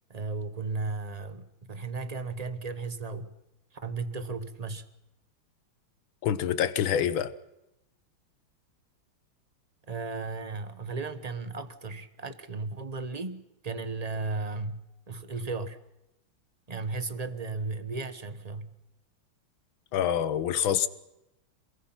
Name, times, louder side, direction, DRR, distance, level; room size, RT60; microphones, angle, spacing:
voice 1, 0.1-3.3 3.8-4.8 9.9-15.8 16.7-18.7, right 3 dB, 30° right, 0.8 m, -35 dB
voice 2, 6.2-7.3 19.9-20.9, left 9 dB, 70° left, 1.7 m, -26 dB
27.5 x 20.0 x 5.8 m
omnidirectional pair, 2.4 m